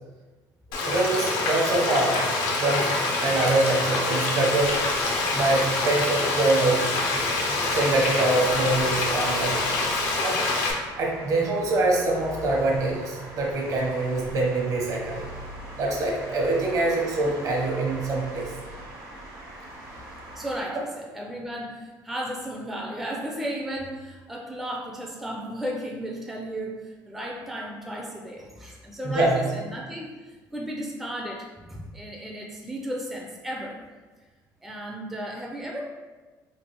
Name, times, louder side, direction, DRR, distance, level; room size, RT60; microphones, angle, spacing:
Frying (food), 0.7-10.7, left 3 dB, 85° left, 0.6 m, -26 dB
voice 1, 0.8-2.2 2.6-4.7 5.3-6.8 7.1-9.6 10.2-10.4 11.0-15.3 15.8-18.5 29.0-29.4, right 2 dB, 50° right, -1 dB, 0.8 m, -24 dB
sound 1, 4.6-20.6, equal, 90° right, 1.1 m, -41 dB
voice 2, 20.4-33.8 34.6-35.8, equal, 5° right, -1 dB, 0.3 m, -34 dB
3.2 x 2.4 x 2.9 m, 1.3 s
cardioid pair, 110°, 7 cm